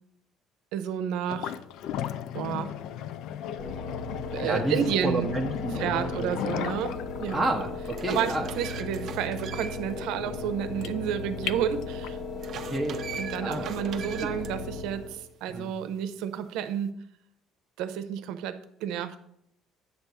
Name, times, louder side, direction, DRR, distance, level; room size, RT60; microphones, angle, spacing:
voice 1, 0.7-1.5 2.3-2.7 4.3-5.3 5.8-7.5 8.1-12.2 13.2-16.9 17.8-19.2, right 9 dB, 80° right, 10 dB, 0.7 m, -31 dB
sound 1, 1.3-12.3, left 10 dB, 65° left, 0.4 m, -37 dB
sound 2, 3.6-15.3, left 4 dB, 35° left, 1.2 m, -37 dB
voice 2, 4.4-6.5 7.3-8.5 10.2-10.4 12.6-13.0 13.4-13.7 14.2-14.3 15.5-15.7, right 1 dB, ahead, -2 dB, 1.0 m, -30 dB
sound 3, 7.0-7.1 7.6-10.0 10.4-10.5 12.4-14.5, right 7 dB, 45° right, 0.6 m, -41 dB
9.1 x 3.5 x 6.9 m, 0.72 s
cardioid pair, 150°, 0 cm